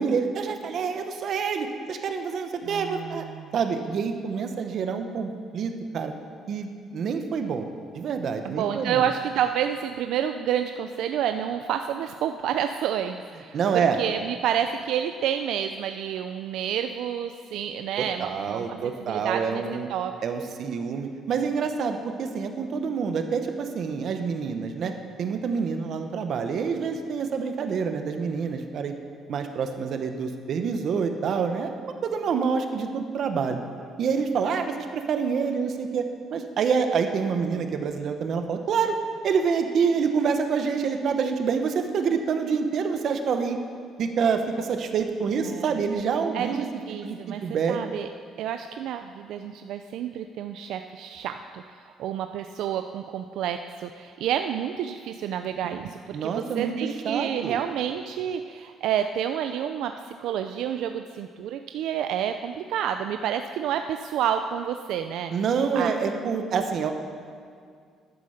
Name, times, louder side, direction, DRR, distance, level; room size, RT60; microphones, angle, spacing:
voice 1, 0.0-3.3 3.5-6.1 6.5-7.7 7.9-9.1 13.5-14.0 18.0-19.9 20.2-24.9 25.2-28.9 29.3-31.8 32.0-33.6 34.0-39.0 39.2-43.6 44.0-46.7 47.0-47.8 56.1-56.7 57.0-57.6 65.3-66.9, right 6 dB, 50° right, 6 dB, 1.0 m, -27 dB
voice 2, 2.6-3.5 8.4-19.6 19.9-20.1 45.4-45.8 46.3-47.4 47.7-48.1 48.4-65.3 65.8-65.9, right 9 dB, 70° right, 7 dB, 0.4 m, -29 dB
11.0 x 9.8 x 6.5 m, 2.2 s
cardioid pair, 160°, 0 cm